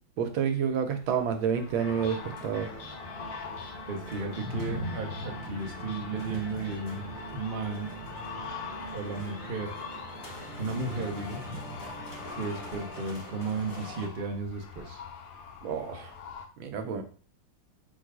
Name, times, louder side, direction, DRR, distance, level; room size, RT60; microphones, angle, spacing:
voice 1, 0.2-2.7 15.6-16.1 16.6-17.0, right 7 dB, 90° right, 6 dB, 1.5 m, -29 dB
sound 1, 1.0-16.5, left 6 dB, 80° left, 1.3 m, -45 dB
sound 2, 1.5-13.7, left 1 dB, 55° left, 0.8 m, -45 dB
sound 3, 1.8-14.1, equal, 30° left, 0.4 m, -42 dB
voice 2, 3.9-7.9 8.9-9.7 10.6-11.4 12.3-15.0, right 3 dB, 65° right, 1 dB, 0.5 m, -34 dB
4.2 x 2.4 x 4.7 m, 0.42 s
omnidirectional pair, 2.1 m